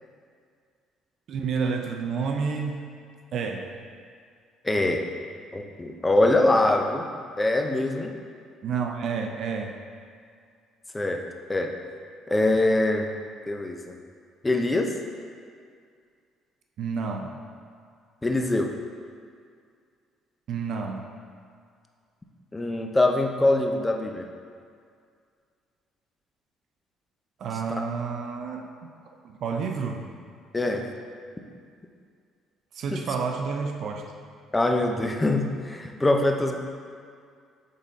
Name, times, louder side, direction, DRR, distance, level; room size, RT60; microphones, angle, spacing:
voice 1, 1.3-3.0 3.3-3.7 8.6-9.7 16.8-17.4 20.5-21.1 27.4-28.9 29.2-30.0 32.7-34.0, right 5 dB, 60° right, 3 dB, 0.5 m, -30 dB
voice 2, 4.6-5.0 5.5-7.1 7.4-8.1 10.9-11.2 11.5-11.7 12.3-13.1 13.5-13.9 14.4-14.9 18.2-18.7 22.5-24.3 30.5-30.9 32.9-33.0 34.5-36.5, left 2 dB, 15° left, 3 dB, 0.6 m, -23 dB
7.9 x 3.8 x 4.1 m, 2.2 s
cardioid pair, 105°, 0 cm